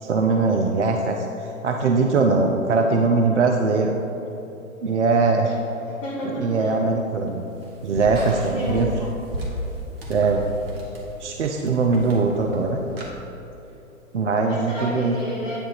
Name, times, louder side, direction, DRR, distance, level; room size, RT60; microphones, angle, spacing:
voice 1, 0.0-3.9 4.8-5.6 6.4-7.4 7.8-8.9 10.1-10.4 11.2-12.8 14.1-15.1, right 4 dB, 60° right, 3 dB, 0.6 m, -21 dB
voice 2, 5.7-6.8 8.4-9.1 10.8-11.0 11.9-12.1 14.4-15.6, equal, 15° left, -7 dB, 0.8 m, -32 dB
sound 1, 6.5-13.1, equal, 45° right, 1.6 m, -35 dB
9.2 x 3.7 x 5.5 m, 3.0 s
figure-of-eight pair, 120°, 41 cm